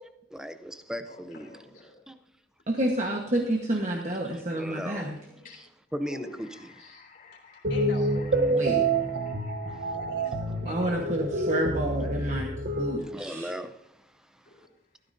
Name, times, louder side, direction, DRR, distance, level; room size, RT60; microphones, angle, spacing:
voice 1, 0.3-1.6 2.1-2.2 4.3-5.1 5.5-6.9 9.7-10.0 13.0-14.5, equal, 5° right, 9 dB, 0.5 m, -38 dB
voice 2, 2.7-5.1 8.5-8.8 10.6-12.5 12.8-13.5, right 1 dB, 40° right, 0 dB, 1.2 m, -29 dB
voice 3, 5.1-5.5 7.7-8.5 9.9-10.3 10.6-11.0 12.9-13.2 14.4-14.7, left 1 dB, 80° left, -1 dB, 3.5 m, -46 dB
voice 4, 6.8-7.6 8.6-9.8, left 3 dB, 50° left, -3 dB, 3.7 m, -49 dB
sound 1, 7.6-13.0, right 2 dB, 65° right, 0.9 m, -27 dB
15.0 x 13.5 x 2.7 m, 0.79 s
head